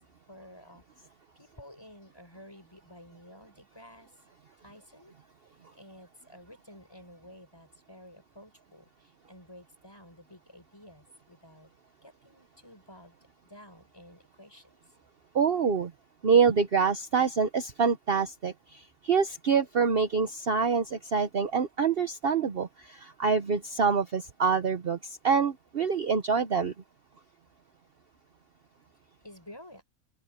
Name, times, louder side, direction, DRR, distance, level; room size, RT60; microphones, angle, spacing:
voice 1, 0.3-4.1 4.6-5.1 5.4-11.7 12.0-13.1 13.4-14.7 29.2-29.8, left 1 dB, 15° left, 5.6 m, -52 dB
voice 2, 15.3-15.9 16.2-26.7, right 5 dB, 45° right, 1.1 m, -26 dB
open air
omnidirectional pair, 1.5 m